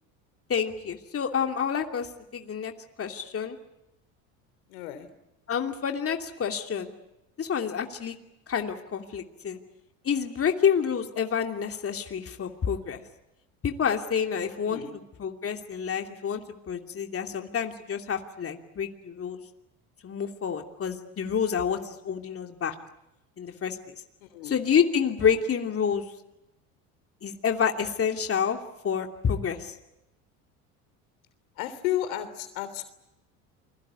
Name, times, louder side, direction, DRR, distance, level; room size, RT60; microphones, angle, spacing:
voice 1, 0.5-2.7 3.0-3.6 5.5-6.9 7.4-8.1 8.5-9.6 10.0-13.0 13.6-14.8 15.2-19.4 20.0-22.7 23.4-23.9 24.4-26.0 27.2-28.6 28.8-29.8, left 7 dB, 35° left, 4 dB, 2.9 m, -28 dB
voice 2, 4.7-5.1 14.7-15.0 24.2-24.6 31.6-32.8, left 12 dB, 75° left, 11 dB, 3.3 m, -32 dB
29.0 x 22.0 x 8.4 m, 0.90 s
hypercardioid pair, 80°, 42 cm